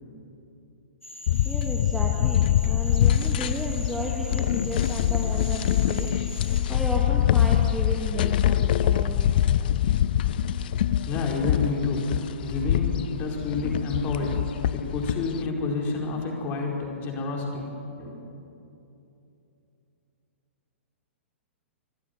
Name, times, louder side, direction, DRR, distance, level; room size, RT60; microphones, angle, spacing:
Cricket / Frog, 1.0-6.6, left 1 dB, 90° left, 5.1 m, -42 dB
sound 1, 1.3-15.5, left 11 dB, 45° left, 0.6 m, -24 dB
voice 1, 1.4-6.1 6.7-9.3, equal, ahead, -2 dB, 2.0 m, -34 dB
voice 2, 11.0-17.7 18.0-18.2, left 3 dB, 25° left, 0 dB, 4.7 m, -29 dB
25.5 x 16.5 x 9.6 m, 2.9 s
figure-of-eight pair, 115°, 7 cm